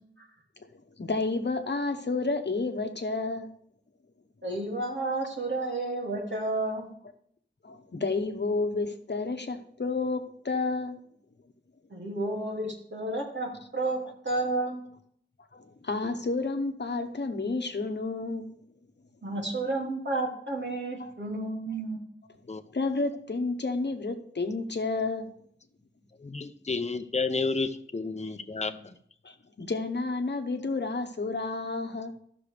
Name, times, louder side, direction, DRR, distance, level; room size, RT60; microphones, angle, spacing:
voice 1, 1.0-3.5 7.6-11.0 14.0-14.1 15.5-18.5 21.0-21.1 22.7-25.3 29.2-32.1, left 3 dB, 60° left, 7 dB, 1.0 m, -30 dB
voice 2, 4.4-6.9 11.9-14.8 19.2-22.0, right 2 dB, 65° right, -2 dB, 2.4 m, -31 dB
voice 3, 26.2-28.9, left 4 dB, 35° left, 9 dB, 0.6 m, -31 dB
13.5 x 6.1 x 3.4 m, 0.65 s
wide cardioid pair, 70°, 20 cm